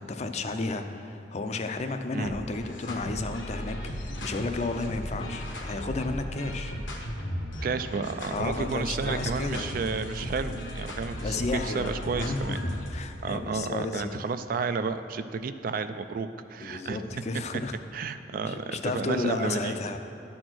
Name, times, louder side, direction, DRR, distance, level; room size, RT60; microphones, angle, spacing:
voice 1, 0.0-6.7 8.3-9.7 11.2-14.2 16.6-17.7 18.4-20.0, left 3 dB, 35° left, 7 dB, 0.4 m, -32 dB
sound 1, 2.2-13.0, equal, 85° left, 1.2 m, -36 dB
voice 2, 7.6-12.6 13.2-17.0 17.9-19.8, right 5 dB, 50° right, 11 dB, 0.3 m, -32 dB
11.5 x 4.3 x 6.2 m, 3.0 s
head